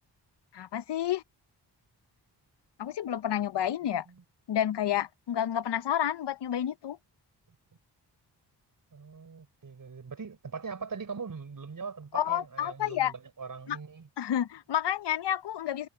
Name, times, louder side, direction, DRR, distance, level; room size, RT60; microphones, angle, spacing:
voice 1, 0.5-1.2 2.8-4.0 4.5-7.0 12.1-13.1 13.7-13.8 14.2-15.9, left 10 dB, 75° left, 0.9 m, -30 dB
voice 2, 8.9-14.1, right 5 dB, 50° right, 4.8 m, -41 dB
cardioid pair, 75°, 42 cm